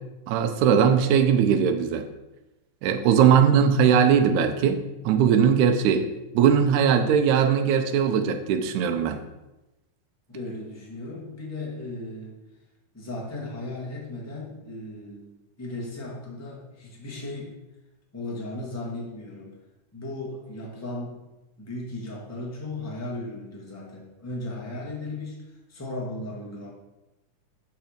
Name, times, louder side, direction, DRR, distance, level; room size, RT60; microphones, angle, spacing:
voice 1, 0.3-2.1 2.8-6.1 6.3-9.2, right 7 dB, 75° right, 6 dB, 2.0 m, -20 dB
voice 2, 3.1-3.7 10.3-12.3 12.9-15.3 15.6-17.6 18.1-19.5 19.9-21.2 21.6-26.7, left 2 dB, 10° left, -4 dB, 0.8 m, -36 dB
7.8 x 5.4 x 5.1 m, 1.0 s
omnidirectional pair, 3.7 m